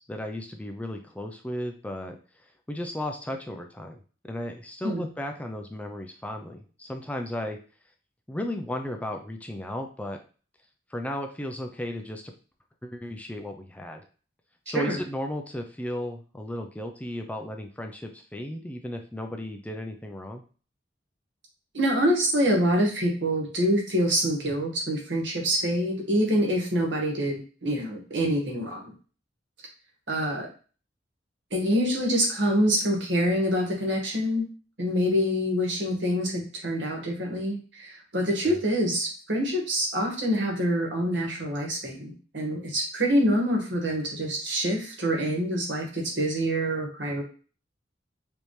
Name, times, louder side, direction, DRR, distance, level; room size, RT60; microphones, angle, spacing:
voice 1, 0.0-2.2 2.7-4.0 4.3-7.6 8.3-10.2 10.9-12.3 12.8-14.0 14.7-20.4 38.4-38.6, left 1 dB, 10° left, 4 dB, 0.5 m, -35 dB
voice 2, 21.7-28.9 30.1-30.5 31.5-34.4 34.8-47.2, equal, 75° right, 0 dB, 1.7 m, -26 dB
5.2 x 2.8 x 3.2 m, 0.38 s
head